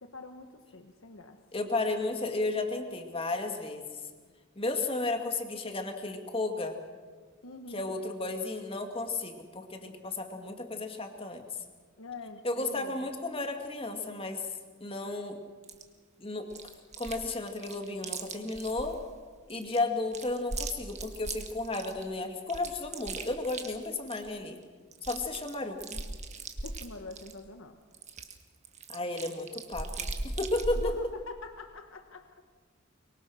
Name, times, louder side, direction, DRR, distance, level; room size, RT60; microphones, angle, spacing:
voice 1, 0.0-1.4 7.4-7.9 12.0-13.1 26.6-27.8 30.8-32.3, left 3 dB, 85° left, 7 dB, 1.3 m, -44 dB
voice 2, 1.5-3.9 4.6-6.8 7.7-11.4 12.4-14.5 14.8-15.4 16.2-16.5 17.0-19.0 19.5-24.6 25.0-26.0 28.9-30.9, left 2 dB, 25° left, 5 dB, 2.2 m, -33 dB
Chewing mastication, 15.6-15.8 16.5-17.2 17.5-19.0 19.5-22.0 22.5-24.3 24.6-24.7 24.9-27.4 27.9-31.0, right 3 dB, 35° right, 1.7 m, -38 dB
24.0 x 23.5 x 6.4 m, 1.5 s
head